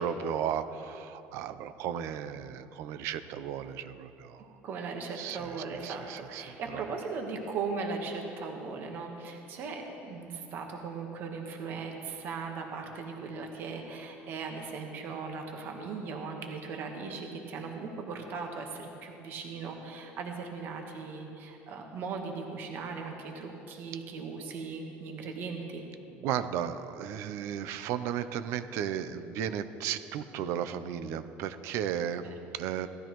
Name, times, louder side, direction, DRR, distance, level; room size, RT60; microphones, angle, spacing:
voice 1, 0.0-4.4 5.2-6.8 26.1-32.3 32.5-32.9, right 9 dB, 60° right, 12 dB, 0.5 m, -35 dB
voice 2, 4.6-25.8 32.2-32.4, right 4 dB, 40° right, 3 dB, 1.2 m, -38 dB
17.0 x 13.0 x 3.1 m, 2.9 s
cardioid pair, 175°, 5 cm